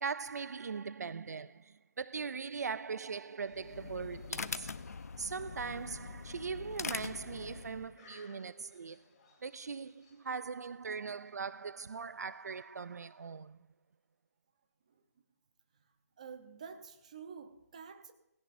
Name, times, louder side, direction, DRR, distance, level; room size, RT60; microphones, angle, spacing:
voice 1, 0.0-4.7 5.2-9.0 9.4-13.6, right 5 dB, 70° right, 0.4 m, -40 dB
sound 1, 3.1-13.5, left 4 dB, 20° left, 2.8 m, -67 dB
sound 2, 3.5-8.0, left 4 dB, 65° left, 0.7 m, -42 dB
voice 2, 16.2-18.1, right 6 dB, 25° right, 0.9 m, -49 dB
18.0 x 17.0 x 2.6 m
hypercardioid pair, 180°, 9 cm